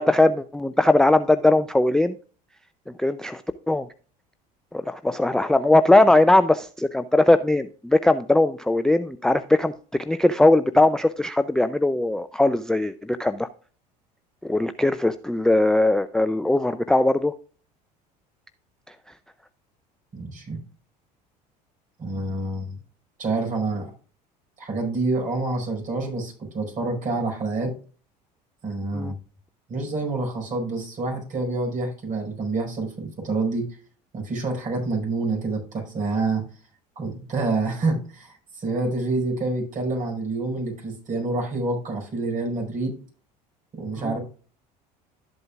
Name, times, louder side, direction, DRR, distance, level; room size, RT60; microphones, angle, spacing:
voice 1, 0.0-2.2 3.0-3.4 3.7-3.9 4.7-9.7 10.1-13.5 14.4-17.3 28.9-29.1 44.0-44.1, left 2 dB, 5° left, 10 dB, 0.4 m, -20 dB
voice 2, 20.1-20.6 22.0-22.8 23.2-23.9 24.6-27.7 28.6-29.1 29.7-33.7 34.1-36.4 37.0-43.0 43.7-44.2, right 3 dB, 40° right, 1 dB, 5.1 m, -27 dB
12.5 x 7.8 x 2.4 m, 0.39 s
hypercardioid pair, 70°, 21 cm